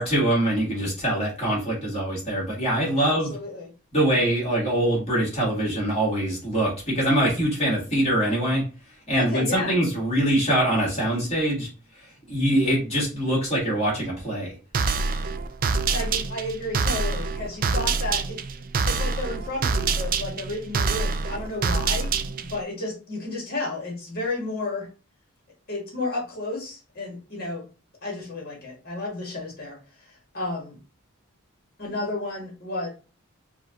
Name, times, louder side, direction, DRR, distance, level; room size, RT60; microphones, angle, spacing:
voice 1, 0.0-3.3 3.9-8.6 9.1-11.7 12.3-14.5, right 1 dB, 30° left, -5 dB, 2.0 m, -23 dB
voice 2, 3.0-3.7 9.2-9.8 15.9-18.4 18.8-22.1 22.5-24.9 25.7-27.6 28.0-30.8 31.8-32.9, left 2 dB, 45° left, -1 dB, 1.8 m, -32 dB
sound 1, 14.7-22.6, right 4 dB, 40° right, 0.4 m, -26 dB
4.9 x 2.4 x 3.9 m, 0.34 s
head